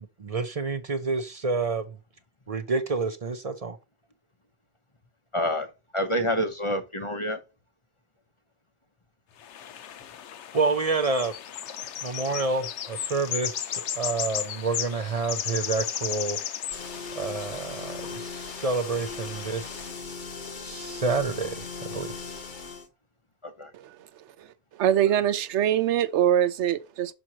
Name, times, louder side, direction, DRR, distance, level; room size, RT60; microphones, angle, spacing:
voice 1, 0.2-2.0 2.5-3.8 10.5-11.3 12.0-16.4 17.2-19.9 20.6-22.1, right 4 dB, 40° right, 0.6 m, -28 dB
voice 2, 5.3-7.4 23.4-23.7, equal, 30° left, 0.8 m, -28 dB
sound 1, 9.4-20.0, left 9 dB, 85° left, 1.0 m, -35 dB
sound 2, 16.7-22.9, left 4 dB, 45° left, 1.1 m, -38 dB
voice 3, 24.7-27.1, right 10 dB, 85° right, 0.9 m, -23 dB
6.1 x 6.0 x 2.8 m
omnidirectional pair, 1.2 m